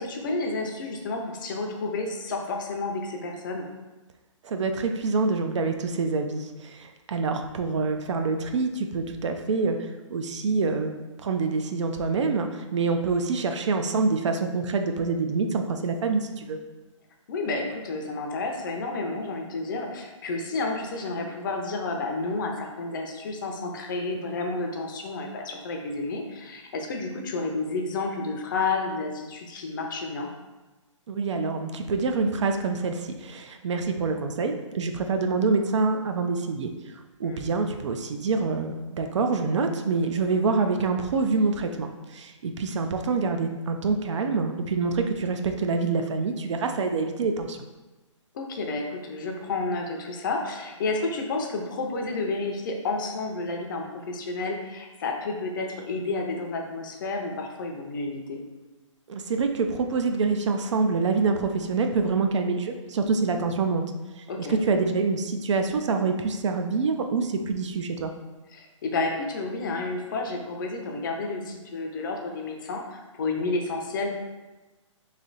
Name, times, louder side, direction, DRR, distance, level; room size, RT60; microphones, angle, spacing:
voice 1, 0.0-3.7 17.3-30.3 37.2-37.5 48.3-58.4 64.3-64.6 68.5-74.1, left 3 dB, 40° left, 2 dB, 0.5 m, -31 dB
voice 2, 4.4-10.9 11.2-16.6 31.1-36.7 37.2-47.6 59.1-63.8 64.2-64.3 64.5-68.1, right 4 dB, 65° right, 6 dB, 0.5 m, -26 dB
3.2 x 2.7 x 3.9 m, 1.1 s
hypercardioid pair, 160°, 17 cm